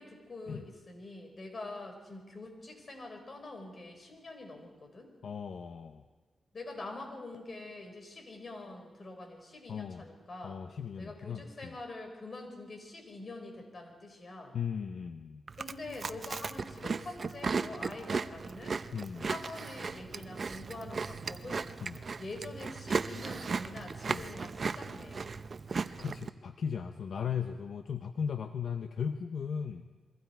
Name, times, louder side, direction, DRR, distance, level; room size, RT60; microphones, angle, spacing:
voice 1, 0.0-5.1 6.5-10.6 11.0-14.6 15.5-18.8 19.2-21.7 22.2-25.4, left 2 dB, 45° left, 3 dB, 5.2 m, -45 dB
voice 2, 5.2-6.0 9.7-10.0 10.4-11.8 14.5-15.4 18.9-19.3 21.8-22.0 24.1-24.2 25.7-29.8, left 7 dB, 70° left, 7 dB, 0.9 m, -37 dB
Chewing mastication, 15.5-26.3, right 4 dB, 50° right, 0.7 m, -36 dB
27.5 x 22.5 x 4.7 m, 1.3 s
cardioid pair, 80°, 0 cm